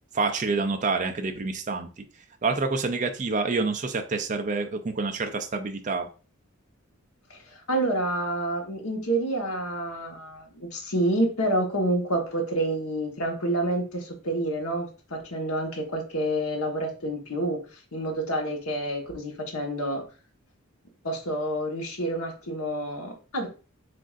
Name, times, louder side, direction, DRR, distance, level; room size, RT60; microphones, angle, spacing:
voice 1, 0.1-1.9 2.4-6.1, right 4 dB, 35° right, 5 dB, 0.4 m, -27 dB
voice 2, 7.3-17.6 17.9-20.0 21.0-23.5, right 1 dB, 80° left, 2 dB, 1.2 m, -28 dB
7.5 x 2.6 x 2.4 m, 0.35 s
head